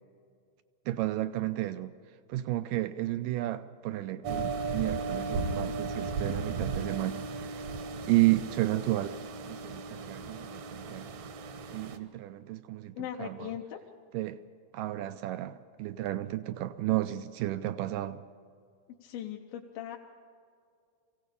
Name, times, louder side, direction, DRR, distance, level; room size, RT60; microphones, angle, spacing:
voice 1, 0.9-1.9 2.3-7.7 8.1-11.2 11.7-12.9 13.2-13.5 14.1-14.4 14.7-18.2, right 16 dB, 80° right, 1.9 m, -32 dB
sound 1, 4.2-12.0, right 4 dB, 65° right, 1.8 m, -36 dB
voice 2, 13.0-13.8 19.0-20.0, left 11 dB, 75° left, 2.6 m, -39 dB
23.5 x 17.0 x 6.8 m
omnidirectional pair, 4.4 m